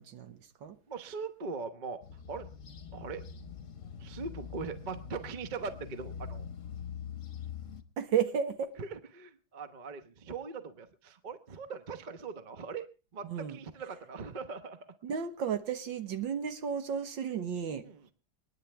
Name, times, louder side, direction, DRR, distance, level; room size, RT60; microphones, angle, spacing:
voice 1, 0.0-0.8 8.0-8.7 13.2-13.6 15.0-17.8, right 7 dB, 70° right, 9 dB, 1.9 m, -33 dB
voice 2, 0.9-2.5 2.9-3.3 4.0-6.5 8.8-12.9 13.1-14.8 17.8-18.1, right 4 dB, 35° right, 10 dB, 0.8 m, -41 dB
sound 1, 2.0-7.8, left 7 dB, 45° left, 1.3 m, -44 dB
28.5 x 10.0 x 3.4 m, 0.34 s
omnidirectional pair, 2.2 m